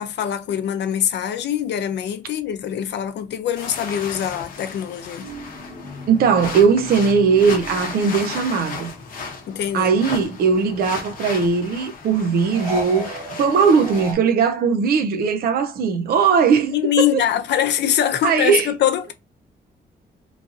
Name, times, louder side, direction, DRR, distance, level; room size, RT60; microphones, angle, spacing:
voice 1, 0.0-5.3 9.5-9.9 16.7-19.1, left 10 dB, 85° left, 0.5 m, -23 dB
sound 1, 3.6-14.1, left 5 dB, 50° left, 0.8 m, -35 dB
sound 2, 5.2-9.1 9.4-11.0 12.5-14.2, right 1 dB, 35° right, 1.5 m, -36 dB
voice 2, 6.1-8.9 9.7-17.2 18.2-18.7, right 6 dB, 60° right, 0.4 m, -19 dB
3.0 x 2.6 x 2.4 m
wide cardioid pair, 165°, 17 cm